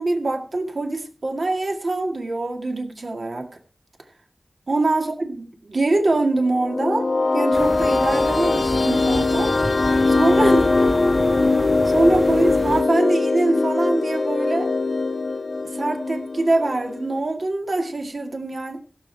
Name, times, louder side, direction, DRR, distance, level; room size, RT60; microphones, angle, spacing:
voice 1, 0.0-3.5 4.7-9.5 10.1-10.7 11.9-14.7 15.7-18.8, right 2 dB, 70° right, 4 dB, 2.0 m, -23 dB
sound 1, 6.4-17.2, left 3 dB, 65° left, 0.8 m, -21 dB
sound 2, 7.5-12.8, equal, 5° right, 0.9 m, -31 dB
15.5 x 7.4 x 4.6 m, 0.39 s
wide cardioid pair, 75°, 0 cm